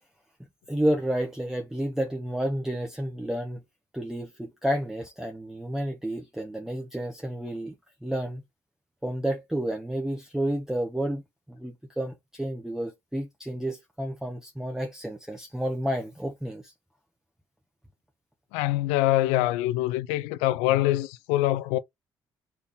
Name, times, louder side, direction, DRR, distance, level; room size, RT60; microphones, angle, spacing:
voice 1, 0.7-3.6 3.9-7.7 8.0-8.4 9.0-11.2 11.5-16.7, right 1 dB, 5° right, 1.1 m, -30 dB
voice 2, 18.5-21.8, left 15 dB, 85° left, 0.4 m, -24 dB
4.2 x 3.4 x 3.5 m
hypercardioid pair, 55°, 10 cm